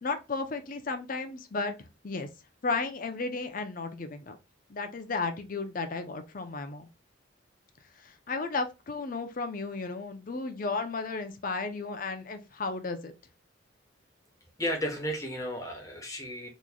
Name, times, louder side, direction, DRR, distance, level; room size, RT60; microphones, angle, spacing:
voice 1, 0.0-2.3 2.6-4.4 4.7-6.9 8.0-13.1, left 3 dB, 45° left, 0.6 m, -34 dB
voice 2, 14.6-16.5, equal, 15° left, 1.0 m, -33 dB
3.9 x 3.0 x 2.2 m
head